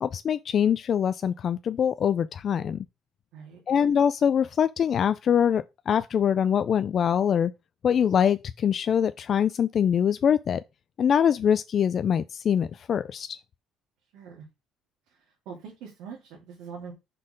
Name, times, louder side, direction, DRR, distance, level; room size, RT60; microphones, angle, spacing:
voice 1, 0.0-2.8 3.7-7.5 7.8-10.6 11.0-13.4, left 8 dB, 40° left, 0.3 m, -24 dB
voice 2, 14.1-14.4 15.1-16.9, right 6 dB, 75° right, 2.7 m, -43 dB
5.7 x 4.2 x 5.0 m
cardioid pair, 145°, 0 cm